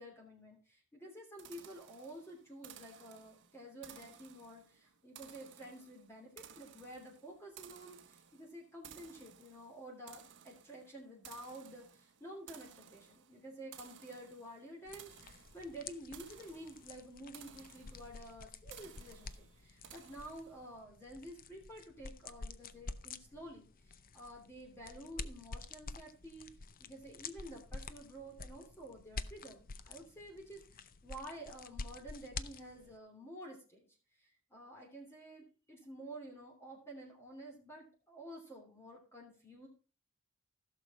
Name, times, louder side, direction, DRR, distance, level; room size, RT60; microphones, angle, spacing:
voice 1, 0.0-26.5 26.8-33.9 34.2-39.7, right 1 dB, 10° left, -1 dB, 2.9 m, -51 dB
sound 1, 1.4-20.8, right 9 dB, 55° right, 1.0 m, -58 dB
sound 2, 14.9-33.0, left 4 dB, 40° left, 0.6 m, -49 dB
15.5 x 6.6 x 4.1 m, 0.36 s
head